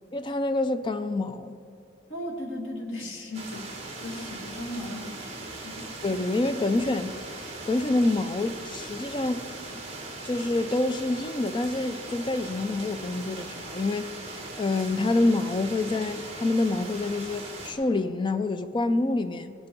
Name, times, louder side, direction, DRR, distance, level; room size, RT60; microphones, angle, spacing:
voice 1, 0.1-1.6 4.1-4.2 6.0-9.8 10.2-14.1 14.6-19.5, left 2 dB, 25° left, 0.3 m, -27 dB
voice 2, 2.1-3.7 4.0-5.9, left 1 dB, 80° left, 1.9 m, -37 dB
sound 1, 3.3-17.7, right 2 dB, 30° right, 1.8 m, -39 dB
19.0 x 8.7 x 4.5 m
head